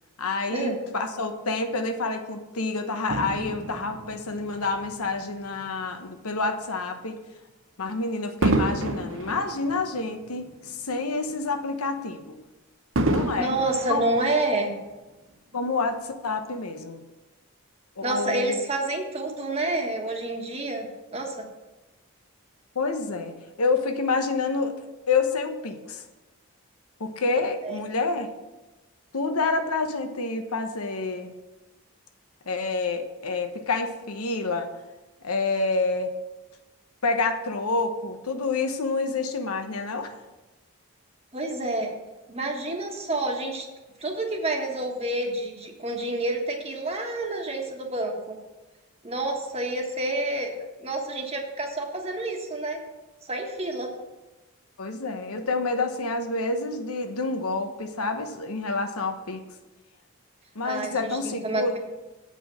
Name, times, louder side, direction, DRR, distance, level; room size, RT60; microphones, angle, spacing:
voice 1, 0.2-7.2 7.8-12.4 13.1-13.6 13.9-14.0 15.5-17.0 18.0-18.6 22.7-26.0 27.0-28.3 29.1-31.3 32.5-34.7 35.2-36.1 37.0-40.1 54.8-59.4 60.5-61.8, left 3 dB, 90° left, 6 dB, 1.0 m, -28 dB
Fireworks, 3.1-5.7 6.3-6.5 8.4-10.9 11.3-11.4 13.0-14.8 15.6-15.7, right 2 dB, 60° right, 0.8 m, -29 dB
voice 2, 13.4-14.7 18.0-20.9 21.1-21.4 27.6-27.8 41.3-41.9 42.3-43.6 44.0-48.4 49.0-50.5 50.8-52.8 53.2-53.9 60.6-61.8, right 2 dB, 30° right, 2 dB, 1.4 m, -28 dB
8.3 x 5.5 x 7.4 m, 1.1 s
head